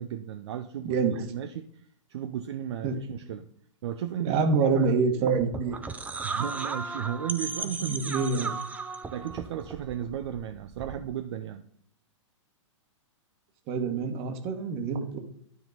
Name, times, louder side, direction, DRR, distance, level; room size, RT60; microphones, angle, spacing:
voice 1, 0.0-1.8 2.1-3.5 3.8-5.3 6.2-7.9 8.3-8.6 9.1-11.6, right 10 dB, 55° right, 7 dB, 0.6 m, -35 dB
voice 2, 0.8-1.2 2.8-3.0 4.2-5.8 7.8-8.5 13.7-15.2, right 5 dB, 35° right, 6 dB, 1.4 m, -26 dB
sound 1, 5.4-11.1, right 4 dB, 10° right, 0.5 m, -36 dB
12.5 x 4.4 x 4.0 m, 0.65 s
hypercardioid pair, 120°, 16 cm